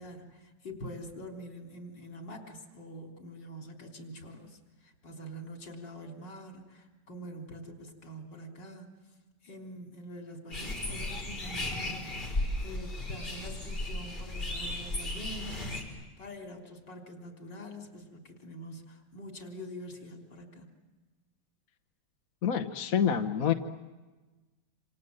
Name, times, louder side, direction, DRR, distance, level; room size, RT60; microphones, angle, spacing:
voice 1, 0.0-8.9 9.4-20.7, equal, 85° left, 4.2 m, -45 dB
sound 1, 10.5-15.8, left 1 dB, 30° left, 4.6 m, -35 dB
voice 2, 22.4-23.5, left 8 dB, 55° left, 1.4 m, -27 dB
27.5 x 27.5 x 7.7 m
omnidirectional pair, 1.9 m